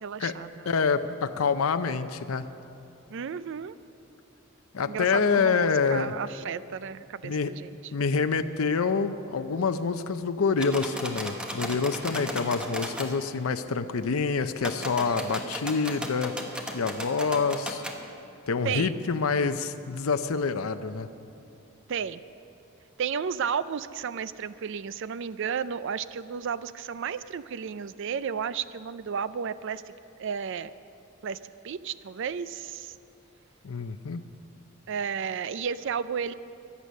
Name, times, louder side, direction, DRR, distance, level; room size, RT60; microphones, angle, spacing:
voice 1, 0.0-0.7 3.1-3.7 4.8-7.8 18.6-19.0 21.9-22.2 23.0-29.8 30.2-30.7 31.2-31.4 31.6-33.0 34.9-36.3, right 7 dB, 60° right, 15 dB, 0.4 m, -33 dB
voice 2, 0.7-2.5 4.7-6.1 7.2-7.5 7.9-16.4 16.7-17.8 18.5-21.1 33.6-34.2, left 5 dB, 80° left, 10 dB, 0.6 m, -27 dB
sound 1, 10.6-13.1 14.6-18.0, equal, 5° right, 1.2 m, -36 dB
23.0 x 8.3 x 6.4 m, 2.7 s
head